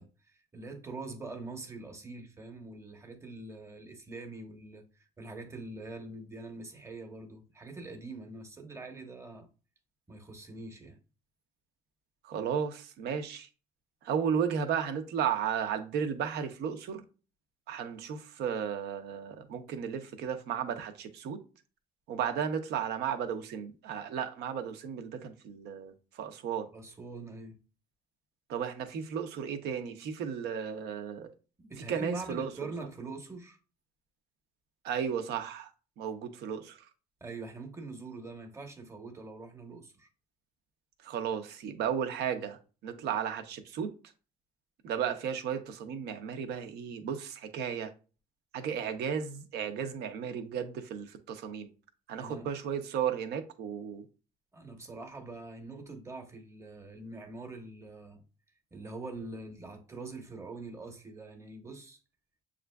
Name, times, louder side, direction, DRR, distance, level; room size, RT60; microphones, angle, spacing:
voice 1, 0.0-9.5 10.1-11.0 26.7-27.6 31.6-33.6 37.2-40.1 52.2-52.5 54.5-58.2 58.7-62.0, right 3 dB, 15° right, 0.9 m, -44 dB
voice 2, 12.2-13.5 14.0-17.0 17.7-21.4 22.1-26.7 28.5-31.3 31.9-32.5 34.8-35.7 36.0-36.8 41.0-43.9 44.8-47.9 48.5-51.7 52.1-54.0, right 7 dB, 75° right, 0.7 m, -34 dB
7.1 x 2.5 x 2.2 m
cardioid pair, 110°, 17 cm